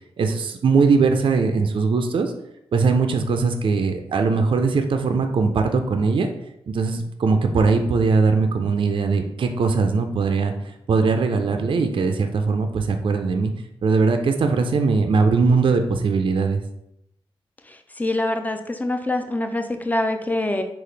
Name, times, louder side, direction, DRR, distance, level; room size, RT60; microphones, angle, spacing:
voice 1, 0.2-2.3 2.7-6.3 6.7-10.5 10.9-13.5 13.8-16.6, right 4 dB, 55° right, 6 dB, 0.4 m, -20 dB
voice 2, 18.0-20.6, left 1 dB, 15° left, 6 dB, 0.5 m, -24 dB
3.9 x 2.4 x 3.2 m, 0.80 s
cardioid pair, 60°, 10 cm